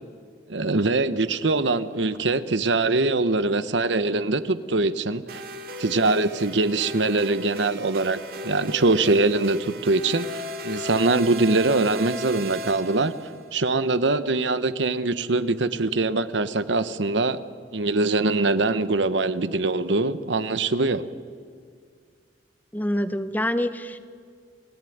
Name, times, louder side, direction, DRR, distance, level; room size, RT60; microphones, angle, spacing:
voice 1, 0.5-5.4 5.8-13.1 13.5-17.4 17.7-21.0, right 3 dB, 75° right, 13 dB, 1.0 m, -23 dB
sound 1, 5.3-13.4, left 1 dB, 50° right, 2.2 m, -36 dB
voice 2, 22.7-24.0, left 1 dB, 10° left, 11 dB, 0.9 m, -26 dB
28.0 x 17.0 x 9.4 m, 2.1 s
head